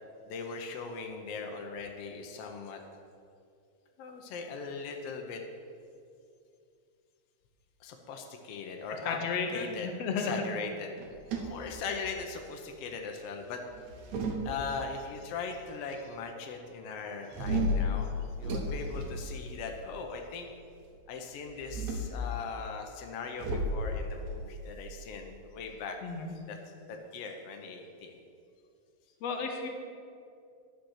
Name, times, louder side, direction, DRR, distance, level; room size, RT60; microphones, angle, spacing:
voice 1, 0.3-2.8 4.0-5.4 7.8-9.2 9.5-9.9 10.2-10.9 11.3-13.6 14.4-18.1 18.4-20.5 21.1-26.0 26.5-26.6 26.9-28.1, left 5 dB, 90° left, 3 dB, 1.3 m, -39 dB
voice 2, 9.0-10.4 26.0-26.3 29.2-29.7, left 5 dB, 65° left, 3 dB, 1.7 m, -33 dB
sound 1, 11.0-12.4 13.7-15.1 17.3-19.9 21.5-22.2 23.4-25.7, equal, 65° right, 2.0 m, -34 dB
10.5 x 5.9 x 6.4 m, 2.4 s
omnidirectional pair, 3.8 m